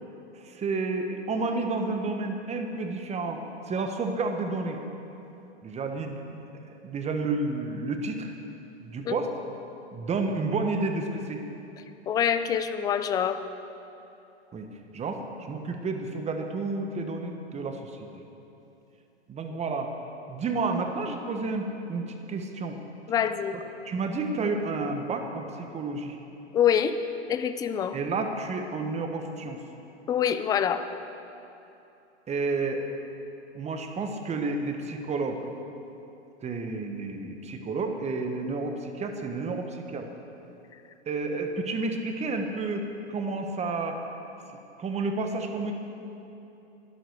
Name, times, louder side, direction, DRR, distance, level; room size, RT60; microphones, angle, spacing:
voice 1, 0.3-3.4 3.7-4.8 5.6-8.3 8.8-9.3 9.9-11.4 14.5-14.7 14.9-18.1 19.3-19.9 20.3-22.8 23.5-26.2 27.9-29.6 32.3-32.8 33.5-35.4 36.4-40.1 41.1-44.1 44.8-45.7, right 3 dB, 20° right, 5 dB, 1.3 m, -31 dB
voice 2, 12.1-13.4 23.1-23.5 26.5-27.0 27.3-28.0 30.1-30.9, left 8 dB, 10° left, 11 dB, 0.3 m, -25 dB
11.5 x 11.5 x 6.6 m, 2.9 s
hypercardioid pair, 110°, 34 cm